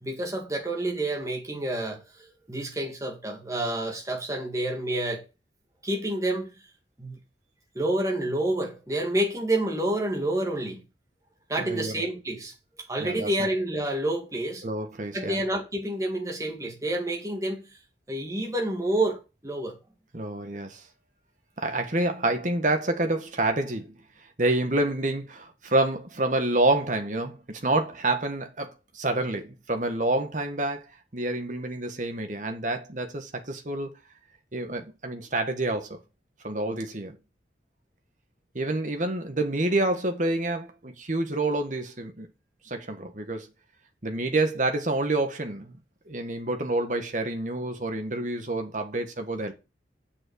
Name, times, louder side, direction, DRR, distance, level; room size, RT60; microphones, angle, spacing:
voice 1, 0.0-5.3 5.8-6.5 7.0-7.2 7.8-10.8 11.5-12.5 12.9-14.6 15.1-17.8 18.1-19.8, right 1 dB, 20° right, 2.0 m, -29 dB
voice 2, 11.6-11.9 13.0-13.3 14.6-15.4 20.1-20.8 21.6-23.9 24.4-30.8 31.1-33.9 34.5-36.0 36.4-37.2 38.5-42.3 42.6-43.5 44.0-45.7 46.1-49.5, right 2 dB, 45° right, 1.6 m, -28 dB
7.4 x 6.2 x 6.4 m
head